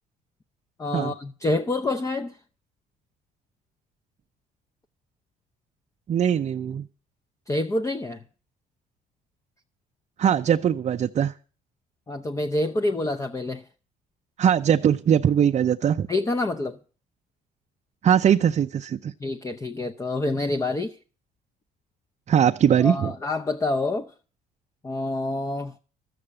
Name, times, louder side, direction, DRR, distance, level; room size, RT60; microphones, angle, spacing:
voice 1, 0.8-2.4 7.5-8.2 12.1-13.7 16.1-16.8 19.2-21.0 22.8-24.1 24.8-25.7, left 2 dB, 20° left, 0.7 m, -27 dB
voice 2, 6.1-6.9 10.2-11.3 14.4-16.1 18.0-19.1 22.3-23.1, right 9 dB, 40° right, 0.6 m, -21 dB
13.0 x 7.7 x 8.7 m
cardioid pair, 110°, 17 cm